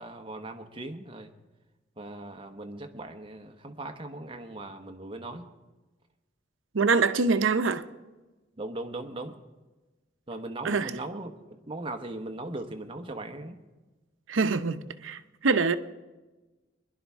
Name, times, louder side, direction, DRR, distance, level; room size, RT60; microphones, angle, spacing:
voice 1, 0.0-1.3 2.0-5.5 8.6-9.4 10.3-13.6, right 2 dB, 25° right, 1.0 m, -39 dB
voice 2, 6.7-7.8 10.6-10.9 14.3-15.8, right 4 dB, 80° right, 0.6 m, -25 dB
21.5 x 11.0 x 3.5 m
head